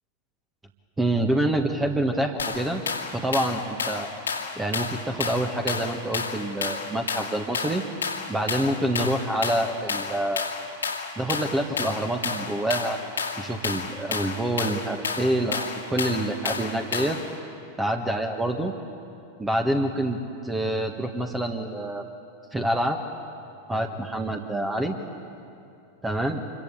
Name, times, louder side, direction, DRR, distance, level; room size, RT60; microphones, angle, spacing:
voice 1, 1.0-2.8 3.1-4.1 4.6-7.8 8.3-10.5 11.2-13.0 13.4-17.2 17.8-18.7 19.4-20.2 20.4-22.0 22.5-23.0 23.7-24.9 26.0-26.4, right 1 dB, 10° right, 4 dB, 1.7 m, -26 dB
sound 1, 2.4-17.3, left 5 dB, 70° left, 2.3 m, -31 dB
27.0 x 23.0 x 9.0 m, 2.6 s
figure-of-eight pair, 90°, 0 cm